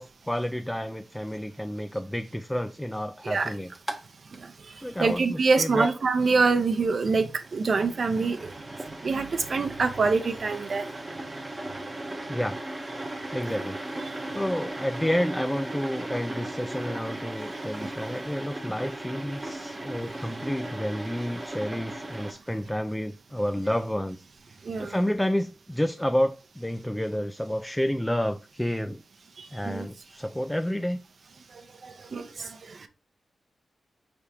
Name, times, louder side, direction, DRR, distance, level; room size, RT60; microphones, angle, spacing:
voice 1, 0.0-3.8 4.8-5.9 12.3-12.6 13.3-14.0 14.3-24.2 24.8-29.0 29.5-31.0, equal, 5° left, 0.3 m, -30 dB
sound 1, 3.7-4.0 4.3-4.4 7.1-22.3, right 1 dB, 25° right, 0.7 m, -37 dB
voice 2, 5.0-8.5 9.0-10.8 13.4-13.6 24.7-24.9 29.6-29.8 32.1-32.5, right 4 dB, 60° right, 0.6 m, -25 dB
4.8 x 3.4 x 2.8 m
cardioid pair, 70°, 0 cm